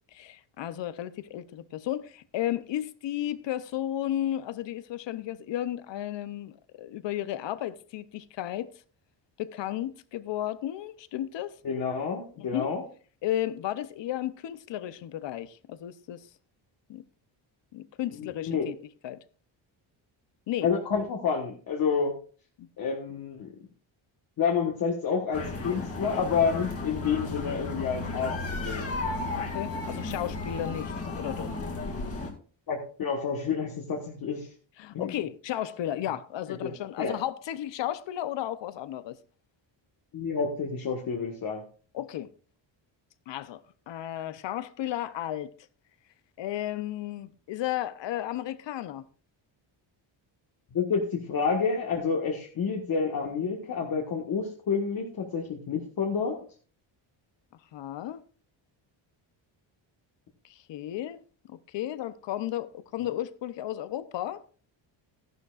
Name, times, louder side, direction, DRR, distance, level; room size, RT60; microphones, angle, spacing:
voice 1, 0.1-8.7 9.4-11.6 12.4-12.7 13.2-16.3 16.9-17.0 17.7-18.8 19.0-19.2 20.5-20.7 22.6-22.7 29.3-31.5 34.8-39.2 41.9-42.3 43.3-45.5 46.4-49.0 57.7-58.2 60.4-61.2 61.5-64.4, left 12 dB, 65° left, 0.8 m, -34 dB
voice 2, 11.6-12.8 18.1-18.7 20.6-22.1 22.8-23.5 24.4-28.9 32.7-34.5 34.9-35.1 36.6-37.1 40.1-41.6 50.7-56.3, left 5 dB, 45° left, 1.6 m, -29 dB
sound 1, 25.3-32.3, left 3 dB, 30° left, 2.1 m, -34 dB
14.0 x 11.0 x 2.5 m
cardioid pair, 145°, 47 cm